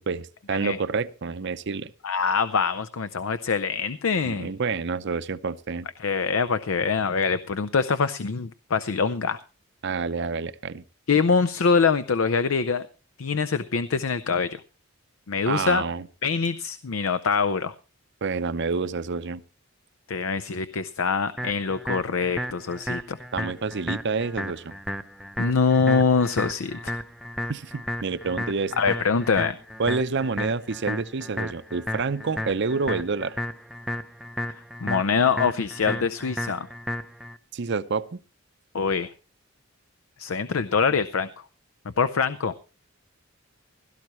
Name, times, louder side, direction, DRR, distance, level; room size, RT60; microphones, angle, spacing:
voice 1, 0.0-1.9 4.2-5.9 9.8-10.8 15.5-16.1 18.2-19.4 23.3-24.7 27.5-28.7 29.8-33.3 37.5-38.2, right 4 dB, 55° right, 0.6 m, -28 dB
voice 2, 2.0-4.5 6.0-9.4 11.1-12.9 13.2-14.6 15.3-15.8 16.2-17.7 20.1-23.2 25.4-27.0 28.8-29.6 34.8-36.7 38.7-39.1 40.2-41.3 42.0-42.5, left 5 dB, 70° left, 0.6 m, -24 dB
sound 1, 21.4-37.4, left 1 dB, ahead, 0.5 m, -33 dB
16.5 x 13.5 x 3.1 m
head